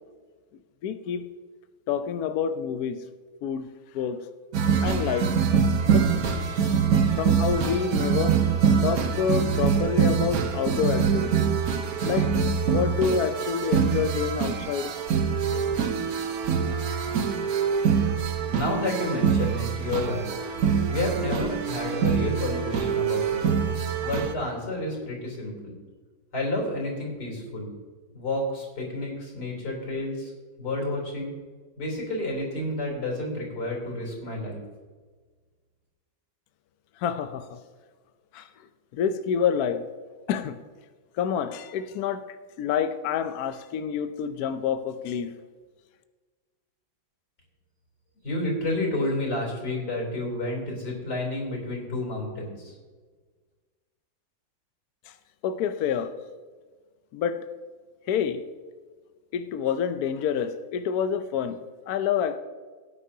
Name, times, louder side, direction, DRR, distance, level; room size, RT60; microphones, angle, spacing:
voice 1, 0.8-1.4 1.9-3.0 3.4-4.3 4.8-5.4 5.9-6.8 7.2-8.5 8.8-11.5 12.0-14.9 15.5-15.6 37.0-37.6 38.3-38.5 38.9-39.9 40.3-40.6 41.2-45.4 55.4-56.1 57.1-57.5 58.1-58.4 59.3-62.4, left 7 dB, 70° left, 0.9 m, -28 dB
sound 1, 4.5-24.3, right 7 dB, 55° right, 1.2 m, -24 dB
voice 2, 18.5-20.3 20.9-23.4 24.0-25.7 26.3-27.7 28.1-30.3 30.6-31.3 31.8-34.6 48.2-52.7, left 1 dB, 55° left, 4.0 m, -30 dB
17.5 x 9.7 x 2.8 m
omnidirectional pair, 2.2 m